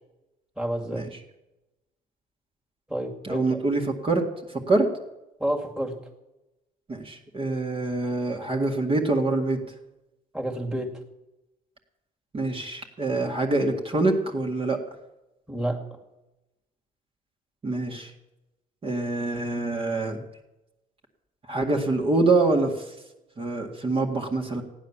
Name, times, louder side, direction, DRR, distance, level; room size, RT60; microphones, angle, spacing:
voice 1, 0.6-1.1 2.9-3.6 5.4-6.0 10.3-11.0 15.5-15.8, right 1 dB, 5° right, 0 dB, 2.3 m, -29 dB
voice 2, 3.2-4.2 4.5-4.9 6.9-9.6 12.3-14.8 17.6-18.1 18.8-20.2 21.5-22.8 23.4-24.6, right 2 dB, 35° right, 1 dB, 2.1 m, -25 dB
15.0 x 10.0 x 7.4 m, 0.98 s
cardioid pair, 110°, 17 cm